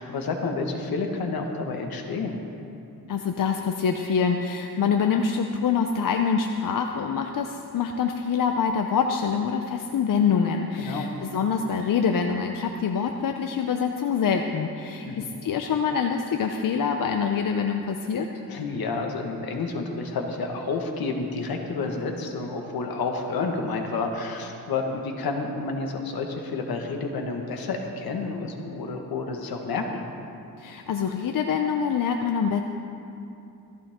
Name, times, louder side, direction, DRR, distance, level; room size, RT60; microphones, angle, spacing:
voice 1, 0.0-2.4 10.8-11.1 15.0-15.3 18.5-30.0, left 3 dB, 80° left, 3 dB, 1.6 m, -30 dB
voice 2, 3.1-18.3 30.6-32.6, left 6 dB, 65° left, 4 dB, 0.8 m, -25 dB
16.0 x 15.0 x 3.7 m, 2.8 s
cardioid pair, 85°, 36 cm